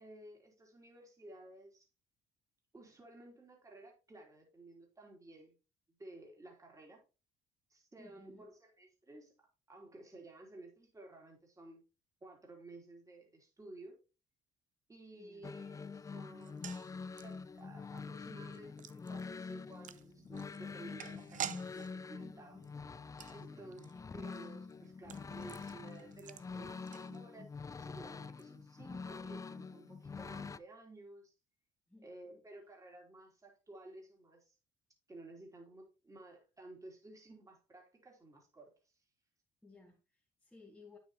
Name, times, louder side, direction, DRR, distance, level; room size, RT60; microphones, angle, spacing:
voice 1, 0.0-1.9 2.7-5.5 6.0-7.0 7.7-11.8 12.2-14.0 14.9-16.9 17.2-22.6 23.3-31.3 32.0-34.6 35.1-39.0, right 2 dB, 20° right, 3.3 m, -54 dB
voice 2, 8.0-8.5 15.1-15.4 22.2-22.8 23.5-23.8 31.9-32.4 39.6-41.0, left 3 dB, 5° left, 2.2 m, -59 dB
sound 1, 15.4-30.6, left 5 dB, 20° left, 0.4 m, -46 dB
sound 2, 16.4-27.6 27.8-27.9 28.2-28.4, right 10 dB, 50° right, 0.6 m, -50 dB
8.9 x 7.4 x 3.0 m
cardioid pair, 110°, 17 cm